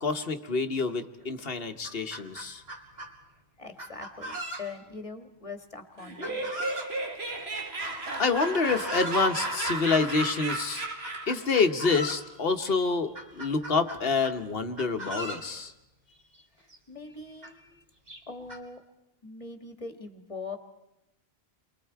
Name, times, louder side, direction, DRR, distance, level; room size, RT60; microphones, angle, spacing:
voice 1, 0.0-2.6 8.2-10.9 11.3-15.7, left 4 dB, 65° left, 7 dB, 1.3 m, -27 dB
Chicken rooster, 1.2-1.3 1.7-3.1 3.8-4.9 6.2-6.9 8.2-9.3 10.2-10.6 11.0-12.3 12.7-12.8 13.1-14.4 14.7-15.5 16.4-16.5 16.7-16.8 17.4-17.5 18.1-18.6, equal, 40° right, 2.7 m, -39 dB
voice 2, 3.6-6.5 16.6-17.6 18.3-18.8 19.2-20.6, left 4 dB, 30° left, 6 dB, 1.8 m, -42 dB
Laughter, 6.0-11.4, right 2 dB, 80° right, 2.4 m, -33 dB
29.0 x 23.0 x 4.7 m, 0.91 s
omnidirectional pair, 1.1 m